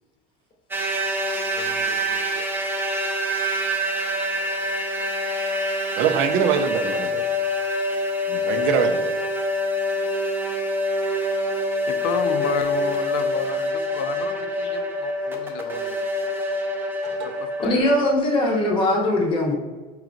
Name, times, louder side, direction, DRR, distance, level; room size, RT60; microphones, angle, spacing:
sound 1, 0.7-17.8, equal, 10° right, 0.6 m, -25 dB
voice 1, 1.6-2.5 6.9-7.2 11.5-16.0 17.2-17.9, left 7 dB, 80° left, 9 dB, 0.5 m, -33 dB
voice 2, 6.0-7.2 8.3-9.1 17.0-17.3, right 7 dB, 65° right, 8 dB, 0.5 m, -24 dB
voice 3, 17.6-19.5, left 1 dB, 25° left, 0 dB, 0.8 m, -20 dB
4.6 x 3.0 x 2.5 m, 1.3 s
supercardioid pair, 115°, 21 cm